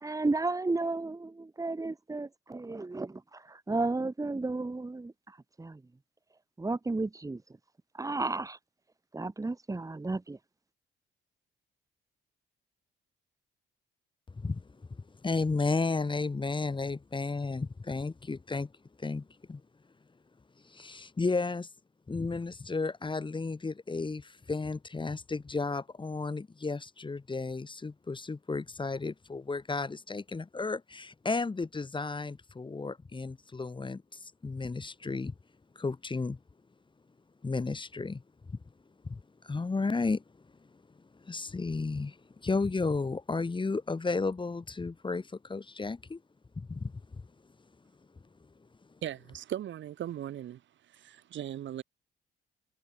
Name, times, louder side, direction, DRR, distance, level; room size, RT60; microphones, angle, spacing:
voice 1, 0.0-5.8 6.6-7.4 7.9-8.6 9.1-10.4, right 3 dB, 15° right, 2.2 m, -33 dB
voice 2, 14.3-19.7 20.1-20.2 20.6-21.7 22.1-35.4 35.7-36.4 37.4-46.2 46.6-49.0, left 3 dB, 25° left, 2.5 m, -34 dB
voice 3, 49.0-50.6 50.9-51.8, right 11 dB, 70° right, 3.4 m, -38 dB
cardioid pair, 90°, 20 cm